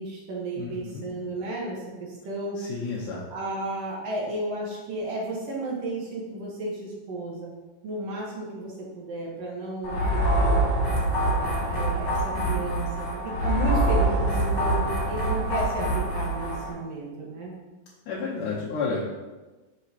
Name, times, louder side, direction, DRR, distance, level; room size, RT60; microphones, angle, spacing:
voice 1, 0.0-2.6 3.3-7.5 7.8-10.6 11.4-17.5, right 2 dB, 55° right, -3 dB, 2.2 m, -33 dB
voice 2, 0.6-1.0 2.6-3.2 18.1-19.0, left 4 dB, 75° left, -5 dB, 2.4 m, -31 dB
sound 1, 9.8-16.7, right 1 dB, 40° left, 2.0 m, -25 dB
8.3 x 6.4 x 2.9 m, 1.2 s
omnidirectional pair, 3.9 m